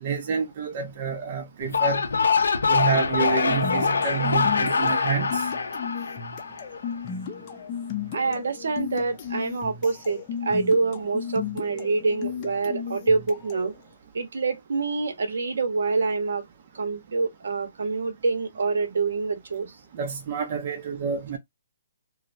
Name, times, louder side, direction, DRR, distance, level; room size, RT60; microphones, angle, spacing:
voice 1, 0.0-2.0 2.7-5.4 20.0-21.4, right 6 dB, 35° right, 0.4 m, -28 dB
sound 1, 1.6-6.9, left 5 dB, 90° left, 0.6 m, -24 dB
sound 2, 3.5-13.8, left 7 dB, 30° left, 0.5 m, -35 dB
voice 2, 8.1-13.7 14.1-16.4 16.7-19.7, right 4 dB, 70° right, 0.8 m, -26 dB
2.6 x 2.0 x 2.5 m
hypercardioid pair, 160°, 0 cm